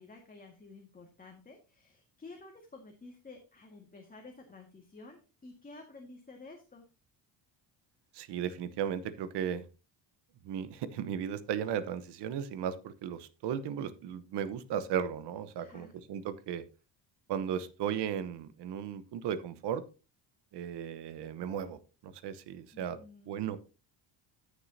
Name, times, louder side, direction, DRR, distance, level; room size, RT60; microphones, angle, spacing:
voice 1, 0.0-6.8 15.6-15.9 22.7-23.3, left 3 dB, 20° left, 1 dB, 1.9 m, -52 dB
voice 2, 8.1-9.6 10.4-16.6 17.3-19.8 20.5-23.0 23.2-23.6, right 8 dB, 65° right, 13 dB, 1.1 m, -36 dB
14.5 x 6.6 x 2.8 m, 0.32 s
cardioid pair, 115°, 43 cm